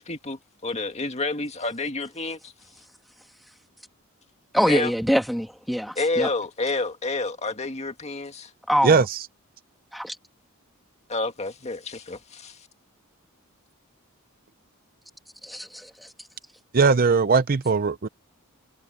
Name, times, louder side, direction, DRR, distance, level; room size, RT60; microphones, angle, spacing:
voice 1, 0.0-2.5 4.7-4.9 6.0-8.5 11.1-12.7, left 3 dB, 30° left, 2.0 m, -29 dB
voice 2, 4.5-6.3 8.7-9.0 9.9-10.2 15.4-15.9, equal, ahead, 1.6 m, -24 dB
voice 3, 8.8-9.2 16.7-18.1, right 5 dB, 40° right, 0.6 m, -19 dB
head